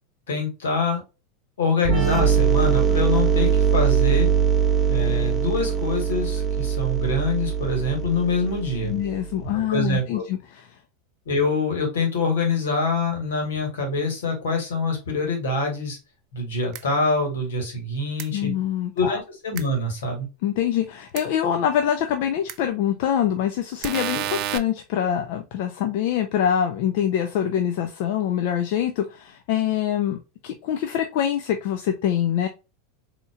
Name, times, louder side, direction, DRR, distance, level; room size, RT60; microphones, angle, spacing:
voice 1, 0.3-1.0 1.6-4.3 4.9-8.9 9.7-10.2 11.2-16.0 16.3-18.5 18.9-20.3, left 3 dB, 80° left, 1.7 m, -25 dB
sound 1, 1.8-9.4, right 7 dB, 20° right, 0.8 m, -22 dB
voice 2, 8.8-10.6 18.3-19.2 20.4-32.5, left 10 dB, 60° left, 0.5 m, -25 dB
sound 2, 16.7-16.8 18.2-18.3 19.6-19.7 21.2-21.3 22.5-22.6 23.8-24.6, right 12 dB, 50° right, 0.4 m, -29 dB
4.1 x 2.9 x 2.3 m
hypercardioid pair, 105°, 0 cm